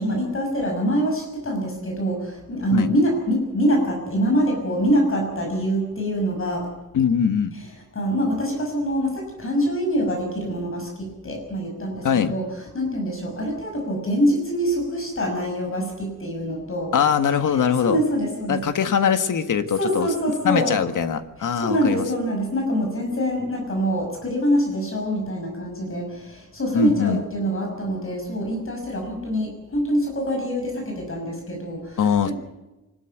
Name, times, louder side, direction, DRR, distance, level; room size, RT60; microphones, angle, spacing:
voice 1, 0.0-6.7 7.9-12.4 12.7-16.9 17.5-18.6 19.8-20.8 21.4-32.3, equal, 45° left, 2 dB, 6.0 m, -25 dB
voice 2, 6.9-7.5 12.0-12.3 16.9-18.0 18.5-20.1 20.4-22.0 26.7-27.2 32.0-32.3, left 7 dB, 85° left, 9 dB, 1.7 m, -21 dB
25.0 x 13.0 x 9.1 m, 1.1 s
wide cardioid pair, 125°, 31 cm